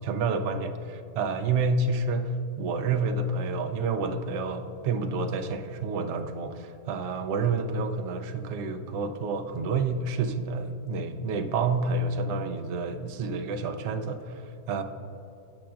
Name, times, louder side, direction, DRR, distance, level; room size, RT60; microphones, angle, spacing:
voice 1, 0.0-14.8, right 3 dB, 65° right, 7 dB, 0.7 m, -29 dB
16.5 x 5.7 x 2.5 m, 2.9 s
omnidirectional pair, 1.7 m